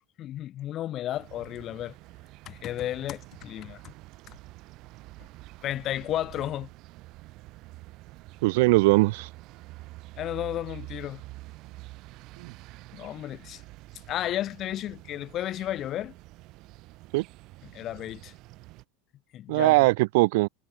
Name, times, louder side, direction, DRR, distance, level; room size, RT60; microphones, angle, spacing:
voice 1, 0.2-1.9 2.5-3.9 4.3-4.4 5.6-6.7 10.2-11.2 12.9-13.6 14.1-16.1 17.6-18.3 19.3-19.8, left 12 dB, 45° left, 1.2 m, -33 dB
sound 1, 1.1-18.8, right 20 dB, 55° right, 3.7 m, -47 dB
voice 2, 8.4-9.3 12.4-12.5 17.1-17.2 19.5-20.5, right 23 dB, 70° right, 0.3 m, -21 dB
hypercardioid pair, 105°, 0 cm